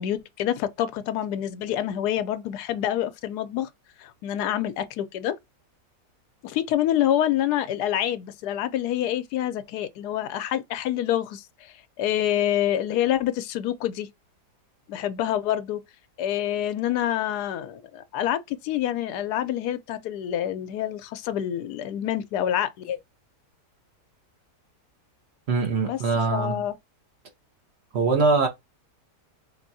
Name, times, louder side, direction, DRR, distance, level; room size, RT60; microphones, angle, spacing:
voice 1, 0.0-3.7 4.0-5.3 6.4-14.1 14.9-15.8 16.2-23.0 25.7-26.0 26.3-26.8, left 11 dB, 75° left, 1.1 m, -27 dB
voice 2, 25.5-26.6 27.9-28.5, right 4 dB, 50° right, 0.8 m, -22 dB
3.4 x 3.3 x 2.6 m
omnidirectional pair, 1.8 m